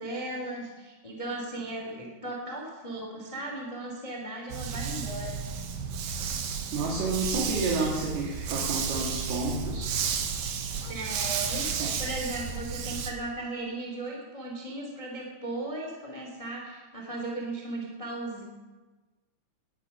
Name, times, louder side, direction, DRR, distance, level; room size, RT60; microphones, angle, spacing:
voice 1, 0.0-5.4 10.9-18.4, right 2 dB, 10° left, -1 dB, 2.1 m, -36 dB
Dog, 4.5-13.1, right 6 dB, 65° right, 2.7 m, -32 dB
voice 2, 6.7-10.0 11.8-11.9, right 3 dB, 85° right, -2 dB, 4.0 m, -30 dB
19.0 x 10.5 x 5.7 m, 1.2 s
omnidirectional pair, 4.4 m